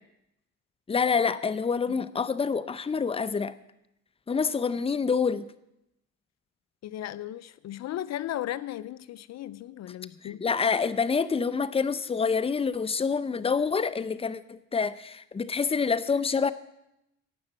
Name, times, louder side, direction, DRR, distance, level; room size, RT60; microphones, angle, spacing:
voice 1, 0.9-3.5 4.3-5.5 10.2-16.5, left 5 dB, 20° left, 14 dB, 0.6 m, -27 dB
voice 2, 6.8-10.4, left 12 dB, 60° left, 17 dB, 0.5 m, -36 dB
17.5 x 5.9 x 7.5 m, 0.85 s
cardioid pair, 90°, 30 cm